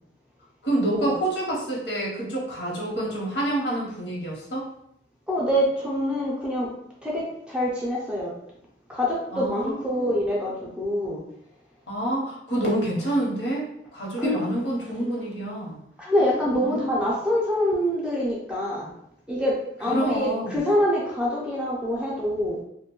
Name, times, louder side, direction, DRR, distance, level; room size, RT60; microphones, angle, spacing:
voice 1, 0.6-4.7 9.3-10.1 11.9-13.7 13.9-15.8 16.6-16.9 19.8-20.6, right 1 dB, 75° left, -4 dB, 1.0 m, -27 dB
voice 2, 5.3-6.7 7.0-8.3 8.9-11.2 14.2-14.4 16.0-18.9 19.3-22.6, equal, 5° right, -4 dB, 0.5 m, -25 dB
2.6 x 2.1 x 3.0 m, 0.77 s
head